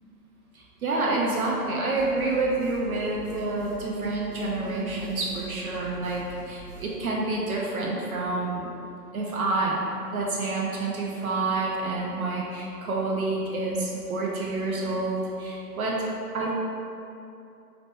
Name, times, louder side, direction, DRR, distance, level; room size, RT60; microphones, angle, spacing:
voice 1, 0.5-8.7 9.1-9.8 10.1-16.0 16.3-16.6, right 2 dB, 60° right, -3 dB, 0.5 m, -28 dB
sound 1, 1.9-7.0, right 1 dB, 20° left, 0.6 m, -45 dB
2.9 x 2.1 x 3.3 m, 2.7 s
hypercardioid pair, 155°, 49 cm